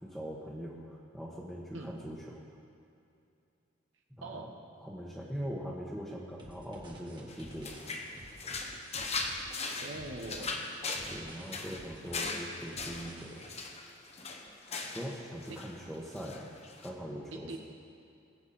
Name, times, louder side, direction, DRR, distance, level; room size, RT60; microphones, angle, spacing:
voice 1, 0.0-2.4 4.2-4.5 4.8-7.7 11.1-13.4 14.9-16.5 16.8-17.6, equal, ahead, -6 dB, 1.2 m, -41 dB
voice 2, 4.2-4.6 9.8-10.7 15.5-15.6 17.3-17.6, right 2 dB, 80° right, 2 dB, 1.4 m, -42 dB
sound 1, 6.4-13.7, right 1 dB, 25° right, 1.6 m, -51 dB
sound 2, 7.3-15.2 15.4-15.8 16.1-16.9, left 3 dB, 35° left, 1.0 m, -39 dB
21.5 x 8.1 x 4.3 m, 2.6 s
head